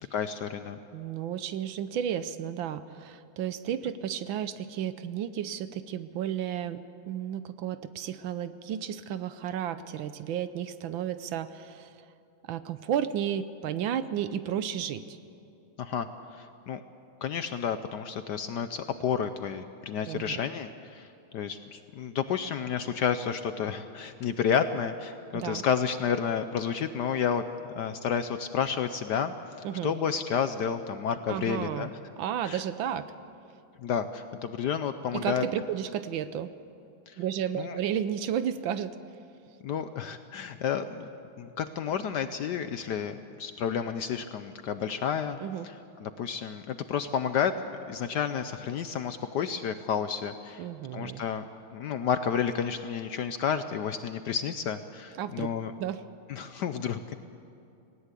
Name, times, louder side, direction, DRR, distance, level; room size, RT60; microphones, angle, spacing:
voice 1, 0.1-0.8 15.8-16.1 16.4-16.8 17.2-21.1 21.3-27.4 27.8-29.3 29.8-31.9 32.5-32.6 33.8-35.4 37.1-37.2 37.6-37.8 39.6-41.1 41.4-45.4 46.0-47.5 47.9-50.6 50.9-51.4 51.7-55.7 56.3-57.0, left 7 dB, 70° left, 10 dB, 1.0 m, -30 dB
voice 2, 0.9-6.8 7.1-12.1 12.4-15.2 20.1-20.4 25.3-25.6 29.6-29.9 31.3-31.9 32.2-33.1 35.1-36.5 37.2-39.0 45.4-45.7 50.6-51.2 55.1-55.5 55.8-56.0, right 9 dB, 75° right, 13 dB, 1.4 m, -32 dB
19.0 x 17.5 x 8.2 m, 2.7 s
omnidirectional pair, 2.3 m